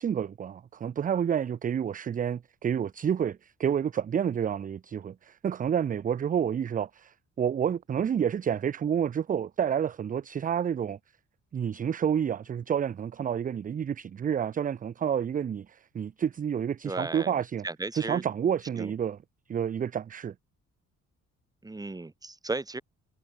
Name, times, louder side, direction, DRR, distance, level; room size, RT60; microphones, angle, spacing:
voice 1, 0.0-11.0 11.5-17.7 18.0-19.2 19.5-20.3, right 8 dB, 30° right, 0.4 m, -29 dB
voice 2, 16.8-18.2 18.8-18.9 21.6-22.8, right 2 dB, 10° right, 1.1 m, -35 dB
cardioid pair, 90°, 30 cm